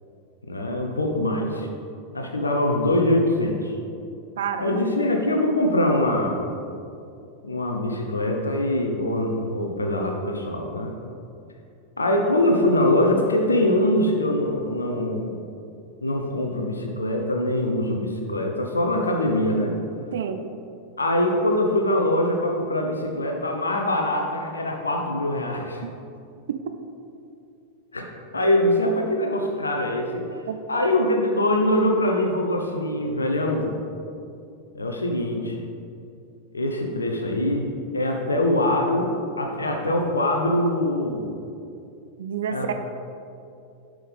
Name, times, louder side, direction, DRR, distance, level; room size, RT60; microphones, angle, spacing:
voice 1, 0.5-1.7 2.1-3.8 4.6-6.4 7.4-10.9 12.0-15.4 16.0-19.8 21.0-25.8 27.9-28.0 28.3-30.2 30.7-33.7 34.7-35.6 36.5-41.3 42.5-42.7, left 1 dB, 80° left, 2 dB, 0.9 m, -23 dB
voice 2, 4.4-4.8 20.1-20.4 25.8-25.9 26.5-26.6 30.5-30.6 42.2-42.7, right 8 dB, 60° right, 7 dB, 0.5 m, -28 dB
11.0 x 6.3 x 3.5 m, 2.6 s
figure-of-eight pair, 90°, 0 cm